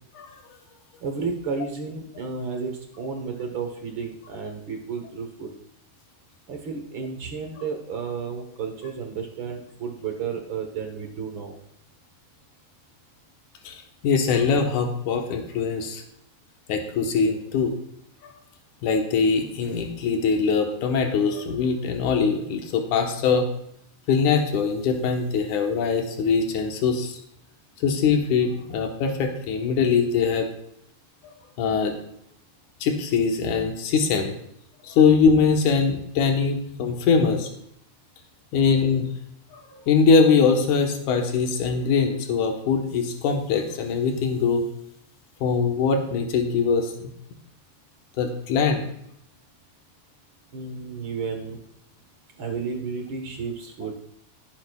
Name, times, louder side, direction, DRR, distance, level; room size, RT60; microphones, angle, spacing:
voice 1, 1.0-5.5 6.5-11.5 50.5-51.6 52.4-54.0, right 5 dB, 55° right, 4 dB, 1.6 m, -32 dB
voice 2, 13.6-16.0 16.7-17.7 18.2-18.3 18.8-23.5 24.1-27.2 27.8-30.5 31.6-31.9 32.8-34.3 34.8-37.5 38.5-39.1 39.5-44.6 45.4-46.9 48.2-48.9, left 5 dB, 85° left, 3 dB, 2.7 m, -22 dB
16.5 x 8.6 x 2.4 m, 0.73 s
omnidirectional pair, 3.4 m